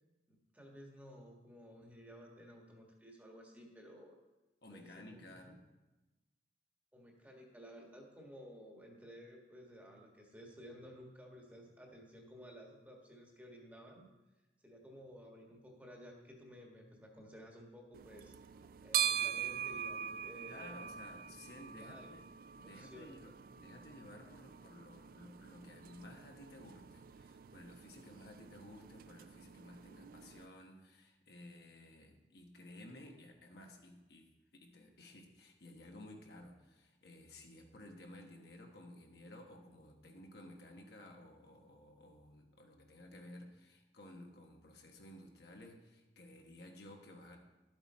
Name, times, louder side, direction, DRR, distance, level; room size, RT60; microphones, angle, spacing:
voice 1, 0.3-4.2 4.7-5.6 6.9-14.1 14.6-18.3 18.8-20.7 21.5-22.1 22.8-23.3, equal, 10° right, 0 dB, 1.5 m, -55 dB
voice 2, 4.6-5.6 20.5-22.2 22.6-47.4, left 1 dB, 60° left, 2 dB, 1.3 m, -55 dB
sound 1, 17.9-30.5, right 9 dB, 50° right, 0.3 m, -43 dB
12.0 x 8.0 x 4.3 m, 1.1 s
head